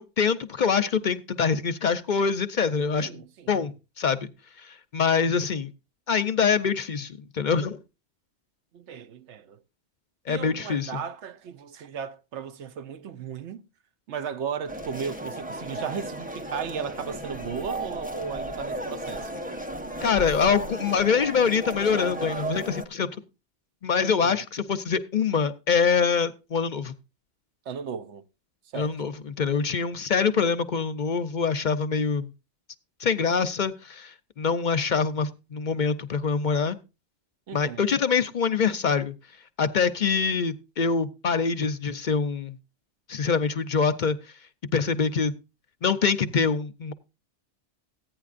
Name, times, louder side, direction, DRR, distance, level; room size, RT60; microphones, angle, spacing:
voice 1, 0.0-4.3 4.6-5.7 6.1-7.8 10.3-11.0 20.0-23.1 23.8-26.9 28.7-32.3 33.0-36.8 37.5-39.1 39.6-42.6 43.1-44.2 44.7-45.3 45.8-46.9, left 6 dB, 50° left, 0.6 m, -25 dB
voice 2, 3.0-3.5 8.7-9.6 10.3-13.6 14.1-19.3 24.0-24.4 27.7-28.2 28.7-29.1 37.5-37.9, right 7 dB, 85° right, 1.1 m, -36 dB
sound 1, 14.7-22.8, right 1 dB, 10° right, 0.9 m, -34 dB
15.0 x 9.5 x 2.5 m
omnidirectional pair, 1.1 m